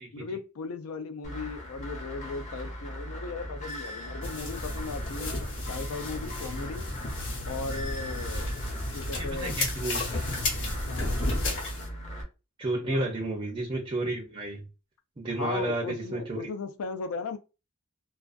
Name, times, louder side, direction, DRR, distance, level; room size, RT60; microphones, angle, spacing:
voice 1, 0.0-6.9 7.4-8.5 8.9-9.5 10.9-11.2 12.8-13.0 15.3-17.4, left 4 dB, 80° left, 0.4 m, -37 dB
sound 1, 1.2-12.2, equal, 35° left, 0.6 m, -39 dB
sound 2, 4.2-11.9, left 2 dB, 65° left, 0.8 m, -33 dB
sound 3, 7.0-12.2, right 3 dB, 75° right, 0.7 m, -45 dB
voice 2, 9.2-10.7 12.6-14.7 15.2-16.5, right 2 dB, 25° right, 0.4 m, -32 dB
2.4 x 2.3 x 2.4 m
head